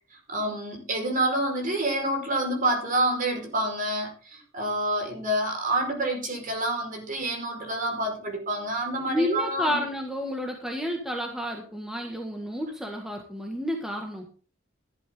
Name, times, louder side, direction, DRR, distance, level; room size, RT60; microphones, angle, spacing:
voice 1, 0.3-9.8, right 1 dB, 45° right, 2 dB, 5.0 m, -28 dB
voice 2, 9.1-14.3, equal, 5° right, 2 dB, 1.8 m, -30 dB
14.5 x 11.5 x 3.8 m, 0.38 s
head